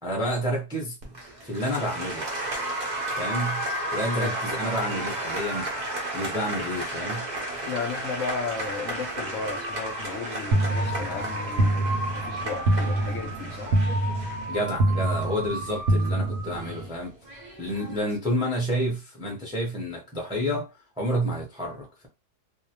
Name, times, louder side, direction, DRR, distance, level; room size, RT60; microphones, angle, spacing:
voice 1, 0.0-1.0 1.4-2.2 3.1-3.6 3.9-5.7 6.1-7.3 14.5-17.1 17.6-20.7 21.0-22.1, equal, 5° right, 0.4 m, -29 dB
Applause, 1.0-18.1, right 1 dB, 65° right, 0.4 m, -33 dB
voice 2, 4.0-4.3 7.6-13.8, left 5 dB, 70° left, 0.8 m, -34 dB
sound 1, 10.5-16.9, right 1 dB, 85° right, 1.1 m, -26 dB
2.6 x 2.1 x 2.8 m
omnidirectional pair, 1.7 m